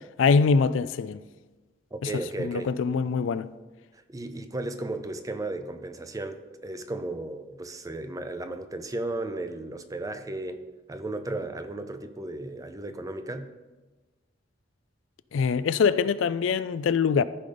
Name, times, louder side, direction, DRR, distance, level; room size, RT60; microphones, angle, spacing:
voice 1, 0.2-1.2 2.0-2.1 2.4-3.5 15.3-17.2, left 5 dB, 80° left, 0.4 m, -23 dB
voice 2, 1.9-2.7 4.1-13.5, right 2 dB, 20° right, 0.6 m, -35 dB
14.0 x 5.0 x 3.9 m
head